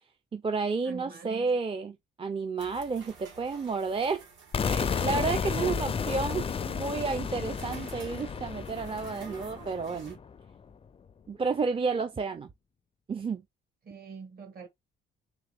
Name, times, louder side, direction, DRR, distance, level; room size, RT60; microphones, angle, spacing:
voice 1, 0.3-4.2 4.6-10.2 11.3-12.5 13.1-13.4, right 4 dB, 25° right, 0.5 m, -31 dB
voice 2, 0.8-1.5 5.2-5.7 11.9-12.0 13.8-14.7, right 5 dB, 50° right, 1.9 m, -45 dB
sound 1, 2.6-10.2, right 4 dB, 70° right, 1.8 m, -51 dB
sound 2, 4.5-10.4, left 6 dB, 30° left, 0.4 m, -32 dB
3.6 x 3.3 x 3.5 m
cardioid pair, 90°, 20 cm